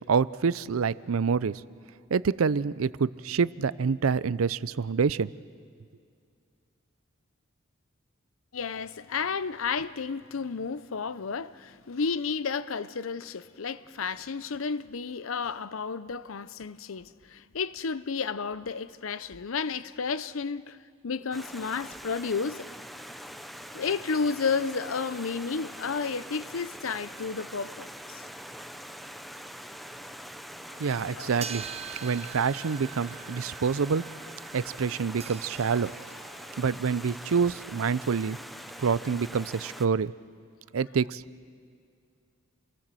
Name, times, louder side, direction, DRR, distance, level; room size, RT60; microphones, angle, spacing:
voice 1, 0.1-1.6 2.1-5.3 30.8-31.6 32.0-34.0 34.5-35.9 36.6-38.4 38.8-40.1 40.7-41.2, right 5 dB, 85° right, 0.5 m, -27 dB
voice 2, 8.5-20.8 21.0-22.7 23.7-28.2 30.7-30.8 31.1-31.3, left 5 dB, 75° left, 0.7 m, -32 dB
Stream, 21.3-39.9, equal, ahead, 0.7 m, -43 dB
sound 1, 31.4-36.7, right 8 dB, 30° right, 0.9 m, -43 dB
28.0 x 18.0 x 7.6 m
head